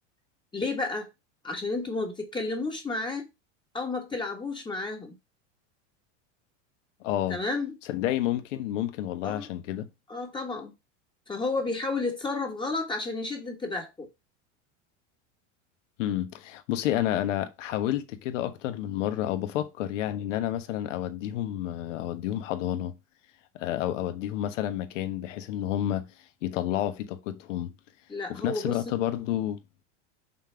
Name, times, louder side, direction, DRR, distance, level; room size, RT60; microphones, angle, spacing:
voice 1, 0.5-1.1 1.4-3.3 3.7-5.1 7.3-7.7 9.2-9.5 10.1-10.7 11.3-14.1 28.1-29.0, left 3 dB, 10° left, 1.3 m, -31 dB
voice 2, 7.0-7.4 7.9-9.9 16.0-22.9 23.5-26.1 26.4-27.7 28.3-29.6, left 12 dB, 75° left, 1.3 m, -30 dB
5.7 x 3.8 x 5.7 m
supercardioid pair, 140°, 37 cm